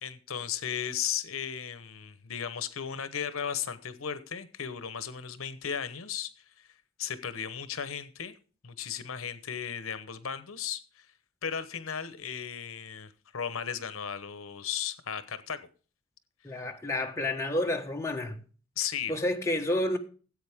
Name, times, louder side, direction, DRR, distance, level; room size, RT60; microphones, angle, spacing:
voice 1, 0.0-6.7 7.0-8.3 8.6-11.1 11.4-15.6 16.5-16.6 18.8-19.1, left 8 dB, 75° left, 1.0 m, -35 dB
voice 2, 16.4-18.4 19.1-20.0, left 1 dB, 15° left, 1.4 m, -30 dB
15.5 x 8.3 x 3.6 m
head